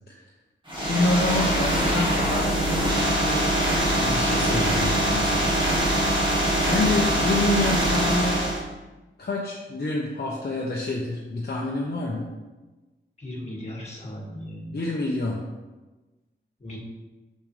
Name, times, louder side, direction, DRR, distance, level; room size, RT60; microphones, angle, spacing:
sound 1, 0.7-8.6, right 1 dB, 25° right, 2.1 m, -23 dB
voice 1, 0.8-3.5 3.9-5.6 6.6-8.4 9.2-12.3 14.7-15.4, left 2 dB, 55° left, -3 dB, 0.9 m, -27 dB
voice 2, 13.2-14.8 16.6-16.8, left 1 dB, 35° left, -3 dB, 2.1 m, -37 dB
7.2 x 6.6 x 3.3 m, 1.2 s
wide cardioid pair, 120°, 20 cm